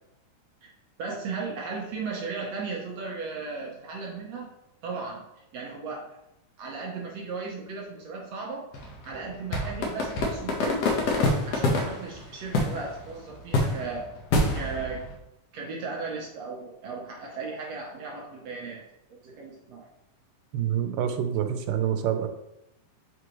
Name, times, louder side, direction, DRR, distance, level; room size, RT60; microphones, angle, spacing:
voice 1, 1.0-4.5 4.8-5.2 5.5-6.1 6.6-8.7 9.0-10.9 11.4-14.1 14.5-15.0 15.5-18.8 19.1-19.9, right 4 dB, 65° right, -1 dB, 1.8 m, -36 dB
sound 1, 8.7-12.2 12.5-13.0 13.3-15.1, left 2 dB, 60° left, 1.9 m, -26 dB
voice 2, 20.5-22.3, right 9 dB, 85° right, 7 dB, 2.3 m, -27 dB
7.8 x 4.8 x 3.0 m, 0.88 s
omnidirectional pair, 3.8 m